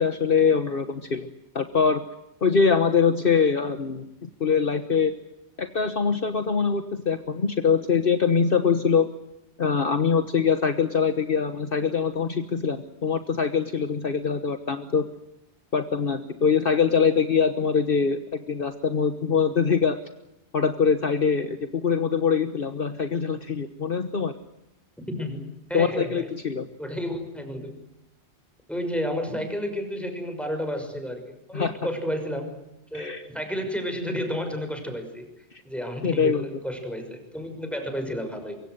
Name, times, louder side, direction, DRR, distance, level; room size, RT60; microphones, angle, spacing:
voice 1, 0.0-2.0 2.4-5.1 5.6-9.1 9.6-15.0 15.7-20.0 20.5-24.3 25.7-26.7 31.5-31.7 32.9-33.2 36.0-36.5, left 6 dB, 55° left, 9 dB, 1.4 m, -23 dB
voice 2, 25.0-26.3 26.8-27.7 28.7-32.6 32.9-35.3 35.6-38.6, equal, ahead, 5 dB, 6.0 m, -31 dB
24.0 x 24.0 x 8.0 m, 0.87 s
omnidirectional pair, 1.1 m